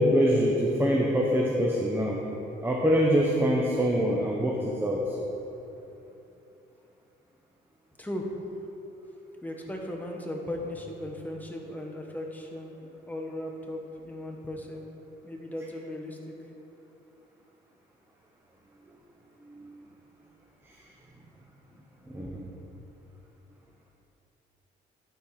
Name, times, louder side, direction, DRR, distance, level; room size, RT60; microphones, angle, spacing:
voice 1, 0.0-2.2 2.6-5.2 19.5-19.6 20.7-20.8 22.1-22.5, equal, 10° right, -2 dB, 0.8 m, -24 dB
voice 2, 8.0-8.6 9.4-12.7 13.1-14.8 15.2-16.3 21.7-21.8, left 1 dB, 10° left, 0 dB, 1.2 m, -37 dB
11.0 x 4.5 x 4.9 m, 3.0 s
cardioid pair, 90°, 20 cm